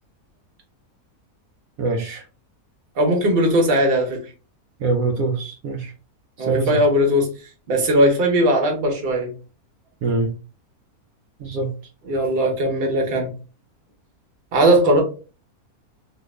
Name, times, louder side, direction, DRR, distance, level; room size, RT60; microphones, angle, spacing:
voice 1, 1.8-2.2 4.8-5.9 6.4-6.8 10.0-10.3 11.4-11.7, right 3 dB, 75° right, 2 dB, 1.0 m, -24 dB
voice 2, 3.0-4.2 6.4-7.3 7.7-9.3 12.1-13.3 14.5-15.0, right 1 dB, 45° right, 1 dB, 1.0 m, -18 dB
2.8 x 2.4 x 3.1 m, 0.34 s
omnidirectional pair, 1.6 m